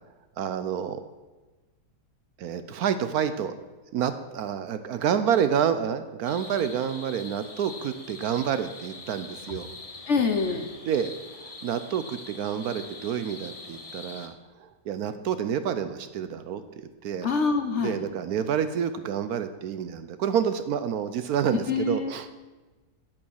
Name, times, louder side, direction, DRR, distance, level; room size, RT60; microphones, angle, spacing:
voice 1, 0.4-1.0 2.4-3.5 3.9-9.7 10.8-11.1 11.6-14.3 14.9-16.6 17.0-17.3 17.8-22.3, right 8 dB, 70° right, 11 dB, 1.1 m, -28 dB
sound 1, 6.2-14.3, left 3 dB, 30° left, 0.8 m, -43 dB
voice 2, 10.1-10.7 17.2-18.0 21.7-22.2, left 4 dB, 50° left, 6 dB, 1.0 m, -25 dB
8.8 x 8.7 x 6.3 m, 1.2 s
omnidirectional pair, 1.8 m